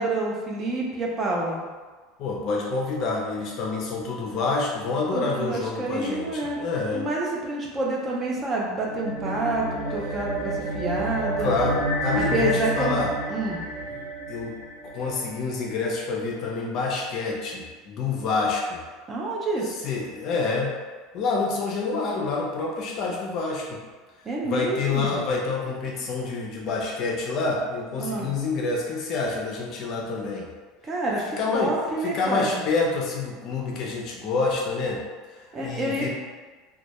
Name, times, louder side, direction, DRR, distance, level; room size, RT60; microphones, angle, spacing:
voice 1, 0.0-1.6 5.1-6.6 6.9-11.5 12.1-13.0 13.3-13.6 19.1-19.8 24.3-25.1 28.0-28.3 30.8-32.6 35.5-36.1, right 2 dB, 20° right, -3 dB, 0.3 m, -28 dB
voice 2, 2.2-7.1 11.4-13.1 13.9-14.0 14.3-14.5 14.9-18.8 19.8-20.7 21.1-23.8 24.4-30.5 31.4-31.7 32.0-35.0 35.3-36.1, left 3 dB, 40° left, -2 dB, 0.4 m, -27 dB
sound 1, 8.8-15.4, right 1 dB, 85° right, 0.7 m, -30 dB
2.2 x 2.0 x 2.8 m, 1.4 s
supercardioid pair, 155°, 0 cm